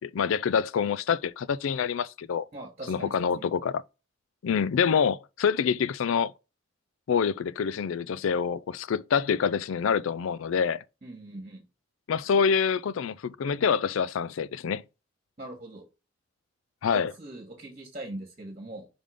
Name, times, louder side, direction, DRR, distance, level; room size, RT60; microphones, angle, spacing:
voice 1, 0.0-2.4 2.9-3.8 4.4-6.3 7.1-10.8 12.1-14.8 16.8-17.1, left 6 dB, 75° left, 0.4 m, -26 dB
voice 2, 2.5-3.3 11.0-11.6 15.4-15.8 16.9-18.9, right 1 dB, 35° right, 1.4 m, -41 dB
5.2 x 3.7 x 5.0 m
head